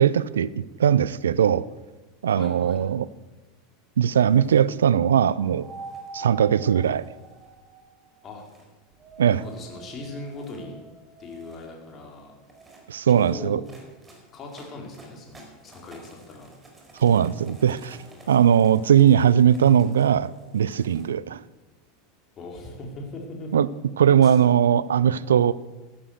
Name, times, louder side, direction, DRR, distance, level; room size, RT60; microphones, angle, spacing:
voice 1, 0.0-1.7 2.2-3.1 4.0-5.7 6.1-7.1 9.2-9.4 12.9-13.6 17.0-18.0 18.3-21.4 23.5-23.7 24.0-25.5, right 9 dB, 75° right, 20 dB, 0.5 m, -19 dB
voice 2, 2.3-2.9 8.2-8.4 9.2-10.7 11.2-12.3 13.1-13.6 14.3-16.5 22.3-23.6 24.2-24.4, left 2 dB, 35° left, 1 dB, 4.5 m, -39 dB
sound 1, 4.2-4.7 5.6-6.1 6.8-7.6 8.3-8.6 9.2-9.6 10.2-10.6 11.1-11.7 12.4-21.1, right 2 dB, 15° right, 4.6 m, -52 dB
sound 2, 5.2-8.4 8.9-13.5, right 3 dB, 40° right, 3.2 m, -46 dB
14.5 x 12.5 x 6.6 m, 1.2 s
figure-of-eight pair, 85°, 0 cm